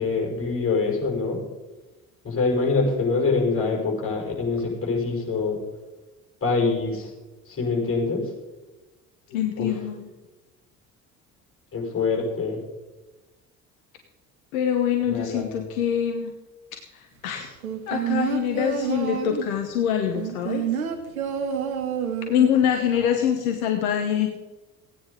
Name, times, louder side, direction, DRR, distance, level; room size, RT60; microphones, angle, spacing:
voice 1, 0.0-1.4 2.2-5.6 6.4-7.1 7.5-8.2 9.6-9.7 11.7-12.6 15.1-15.6, left 4 dB, 30° left, -2 dB, 5.9 m, -25 dB
voice 2, 9.3-10.1 14.5-16.3 16.9-17.5 17.9-20.7 22.3-24.3, left 9 dB, 70° left, 4 dB, 1.2 m, -24 dB
sound 1, 17.6-19.6 20.1-22.6 22.9-23.0, right 8 dB, 80° right, 1.3 m, -28 dB
16.0 x 9.7 x 5.1 m, 1.1 s
figure-of-eight pair, 55°, 42 cm